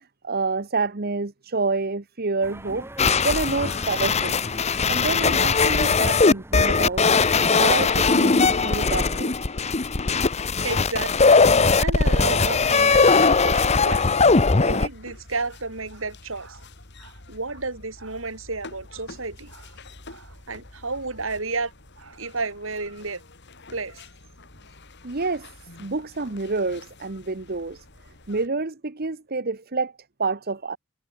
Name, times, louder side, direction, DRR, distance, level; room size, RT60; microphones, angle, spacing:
voice 1, 0.2-2.9 3.2-4.3 4.9-7.1 7.5-9.4 10.5-10.6 25.0-25.5 25.8-27.8 28.3-29.9 30.2-30.8, right 3 dB, 45° right, 1.1 m, -28 dB
sound 1, 2.4-9.2, right 1 dB, 10° right, 6.9 m, -42 dB
sound 2, 3.0-14.9, left 4 dB, 30° left, 0.8 m, -19 dB
voice 2, 10.6-11.3 11.8-14.0 14.5-16.6 17.0-19.7 20.1-23.2 23.7-24.0, right 3 dB, 70° right, 4.1 m, -32 dB
sound 3, 13.7-28.5, left 2 dB, 55° left, 3.6 m, -47 dB
head